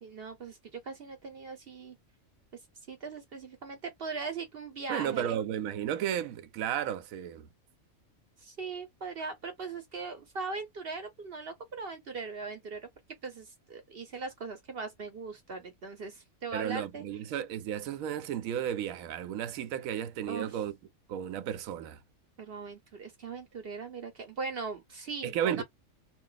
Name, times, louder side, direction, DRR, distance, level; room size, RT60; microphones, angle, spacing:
voice 1, 0.0-2.0 2.5-2.6 2.9-5.4 8.4-12.9 13.2-17.0 20.3-20.6 22.4-25.6, right 4 dB, 50° right, 0.8 m, -40 dB
voice 2, 4.9-7.5 16.5-20.7 21.1-22.0 25.2-25.6, right 10 dB, 80° right, 1.0 m, -33 dB
2.5 x 2.3 x 3.8 m
omnidirectional pair, 1.4 m